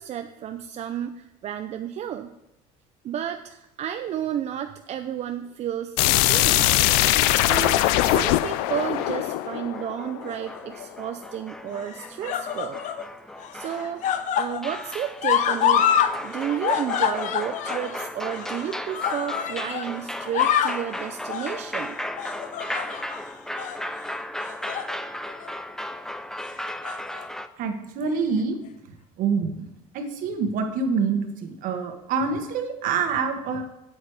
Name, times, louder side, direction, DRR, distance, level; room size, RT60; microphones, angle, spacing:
voice 1, 0.0-2.3 3.0-6.7 7.4-12.8 13.5-14.0 14.4-15.8 16.2-22.0, right 10 dB, 45° right, 7 dB, 0.6 m, -32 dB
sound 1, 6.0-10.7, left 15 dB, 85° left, 0.5 m, -21 dB
sound 2, 8.5-27.5, left 1 dB, 5° left, 0.5 m, -36 dB
sound 3, 10.3-10.9 11.8-13.0 13.4-16.1 16.4-19.9 20.2-20.8 21.3-21.6 22.2-23.2 23.6-23.8 24.4-24.9 25.3-25.5 26.6-27.2 28.1-28.2, left 9 dB, 55° left, 0.8 m, -26 dB
voice 2, 27.6-28.6 29.2-29.5 29.9-33.6, right 5 dB, 65° right, 6 dB, 1.5 m, -26 dB
8.1 x 8.0 x 4.9 m, 0.90 s
cardioid pair, 110°, 15 cm